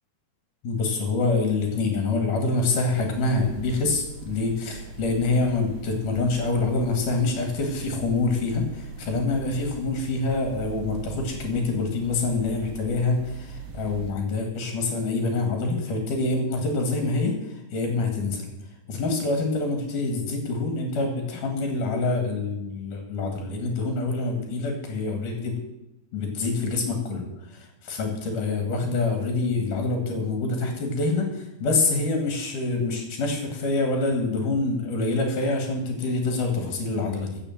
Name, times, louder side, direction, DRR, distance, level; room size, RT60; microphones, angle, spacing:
voice 1, 0.6-18.5 18.9-25.5 26.1-37.4, left 3 dB, 55° left, 3 dB, 3.2 m, -26 dB
sound 1, 3.0-14.1, right 7 dB, 50° right, 2.3 m, -41 dB
15.5 x 6.7 x 7.3 m, 0.95 s
omnidirectional pair, 4.7 m